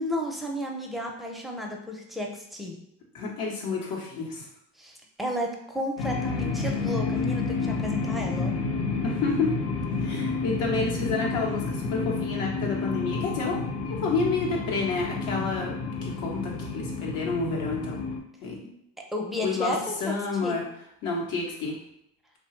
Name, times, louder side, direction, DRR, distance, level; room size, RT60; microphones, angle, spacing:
voice 1, 0.0-2.8 4.8-8.5 19.1-20.1 20.4-20.6, equal, ahead, 0 dB, 0.5 m, -32 dB
voice 2, 3.1-4.5 9.0-9.5 10.0-18.0 18.4-18.8 19.4-19.7 20.0-20.6 21.0-21.7, left 4 dB, 75° left, -2 dB, 0.9 m, -29 dB
sound 1, 6.0-18.2, left 4 dB, 50° left, 0.5 m, -30 dB
2.7 x 2.1 x 3.1 m, 0.77 s
supercardioid pair, 85°, 35 cm